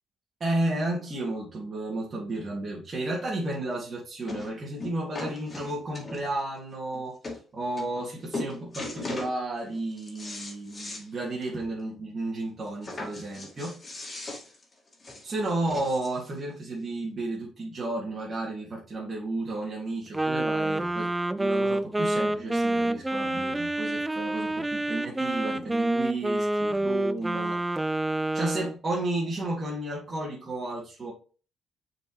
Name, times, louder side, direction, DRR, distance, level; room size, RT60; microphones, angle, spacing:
voice 1, 0.4-14.3 15.2-27.8 28.3-31.1, right 2 dB, 35° right, -5 dB, 2.3 m, -33 dB
sound 1, 3.5-3.6 4.3-4.5 4.8-6.4 6.9-7.0 7.2-7.4 7.8-8.1 8.3-9.3 9.7-11.1 11.4-11.5 11.8-11.9 12.8-16.3 17.1-17.2, left 2 dB, 30° left, 2.3 m, -38 dB
Wind instrument woodwind instrument, 20.1-28.8, right 1 dB, 15° right, 0.4 m, -28 dB
6.7 x 4.6 x 3.1 m, 0.37 s
cardioid pair, 90°, 0 cm